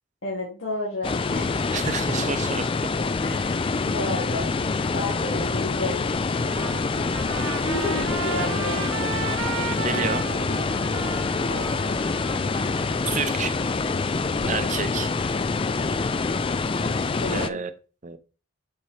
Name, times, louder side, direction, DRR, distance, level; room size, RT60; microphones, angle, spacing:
voice 1, 0.2-1.7 3.2-4.5 4.9-6.0 7.7-8.9 11.4-12.0 14.4-14.7 17.2-17.6, left 1 dB, 85° left, -6 dB, 2.5 m, -32 dB
sound 1, 1.0-17.5, left 4 dB, 25° left, 0.3 m, -26 dB
voice 2, 1.7-2.7 8.4-8.5 9.8-10.2 13.1-13.6 14.5-15.1 17.3-17.7 18.0-18.2, right 5 dB, 35° right, 11 dB, 0.6 m, -29 dB
Trumpet, 6.3-13.7, right 6 dB, 80° right, 0.8 m, -35 dB
6.9 x 5.8 x 3.2 m, 0.36 s
head